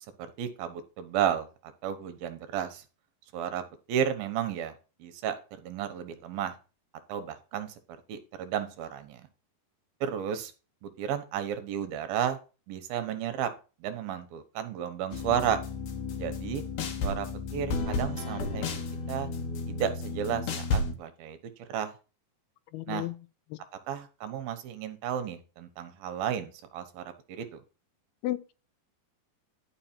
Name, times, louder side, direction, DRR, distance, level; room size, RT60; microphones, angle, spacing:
voice 1, 0.2-2.8 3.3-3.6 3.9-4.7 5.0-5.4 5.6-6.5 7.1-7.7 8.1-9.3 10.0-10.5 10.8-12.4 12.7-13.5 13.8-15.6 16.2-16.6 17.0-17.3 17.5-18.6 19.1-19.3 19.7-21.4 21.7-21.9 22.9-23.1 23.9-27.6, right 9 dB, 75° right, 2.9 m, -32 dB
sound 1, 15.1-20.9, left 3 dB, 55° left, 2.4 m, -32 dB
voice 2, 22.7-23.1 23.5-23.6 28.2-28.5, left 15 dB, 85° left, 2.7 m, -33 dB
11.5 x 5.6 x 4.4 m
omnidirectional pair, 4.4 m